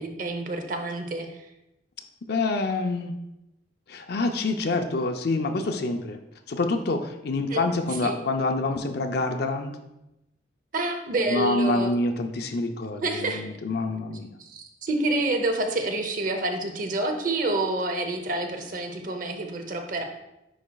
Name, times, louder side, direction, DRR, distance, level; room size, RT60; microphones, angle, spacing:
voice 1, 0.0-1.5 7.4-7.6 8.0-8.1 10.7-12.0 13.0-13.4 14.4-20.0, right 2 dB, 45° right, 5 dB, 0.7 m, -28 dB
voice 2, 2.3-3.2 3.9-6.2 6.5-9.8 11.3-14.3, left 2 dB, 55° left, 6 dB, 0.5 m, -27 dB
9.9 x 4.1 x 2.3 m, 0.90 s
head